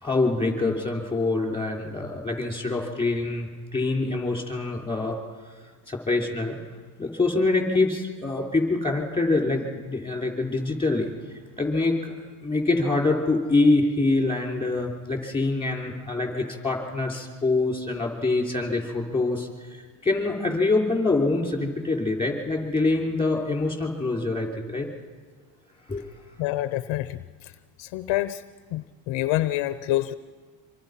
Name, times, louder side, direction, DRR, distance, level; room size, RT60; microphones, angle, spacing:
voice 1, 0.0-5.2 5.9-6.6 7.0-11.1 11.6-12.1 12.4-24.9 25.9-26.1, left 3 dB, 10° left, 0 dB, 5.4 m, -25 dB
voice 2, 26.4-27.2 27.8-28.4 28.7-30.1, left 15 dB, 65° left, 12 dB, 0.9 m, -26 dB
26.0 x 25.5 x 5.8 m, 1.5 s
cardioid pair, 110°, 48 cm